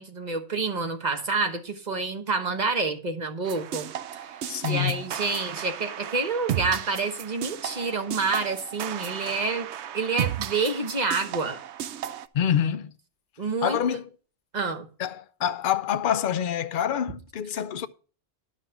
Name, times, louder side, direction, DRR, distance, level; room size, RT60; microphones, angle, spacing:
voice 1, 0.0-3.9 4.7-9.7 9.9-11.6 13.4-14.0 14.5-14.9, right 4 dB, 40° right, 1.2 m, -28 dB
sound 1, 3.5-12.3, right 10 dB, 70° right, 0.9 m, -34 dB
voice 2, 4.5-5.0 12.3-12.9 13.6-14.1 15.0-17.9, left 9 dB, 55° left, 0.7 m, -26 dB
11.5 x 5.8 x 5.7 m
omnidirectional pair, 1.2 m